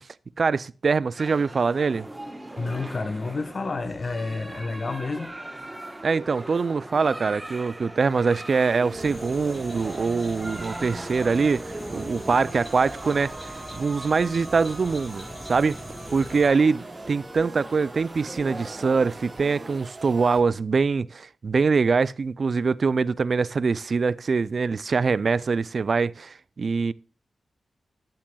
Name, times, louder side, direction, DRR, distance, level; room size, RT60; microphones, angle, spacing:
voice 1, 0.4-2.0 6.0-15.8 16.1-26.9, right 4 dB, 60° right, 0.3 m, -24 dB
sound 1, 1.2-19.8, right 1 dB, 20° right, 1.1 m, -41 dB
voice 2, 2.6-5.3, left 3 dB, 50° left, 1.1 m, -30 dB
sound 2, 8.5-20.4, right 2 dB, 40° right, 1.8 m, -41 dB
sound 3, 8.9-16.5, equal, 15° left, 5.1 m, -42 dB
10.5 x 8.8 x 2.3 m
cardioid pair, 60°, 0 cm